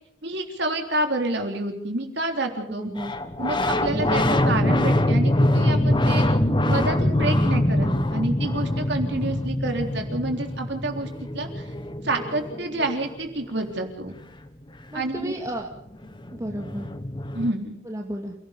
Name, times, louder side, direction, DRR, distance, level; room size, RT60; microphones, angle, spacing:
voice 1, 0.2-2.9 3.4-6.4 6.7-11.7 12.0-14.1 14.9-15.3 17.3-17.7, right 2 dB, 60° right, 4 dB, 3.6 m, -28 dB
voice 2, 2.7-3.1 14.9-15.7 16.3-16.9 17.8-18.3, equal, 15° right, 1 dB, 2.2 m, -32 dB
sound 1, 3.0-13.4 15.5-15.6 15.7-17.5, left 1 dB, 25° left, 1.4 m, -24 dB
28.5 x 17.5 x 5.3 m, 0.69 s
head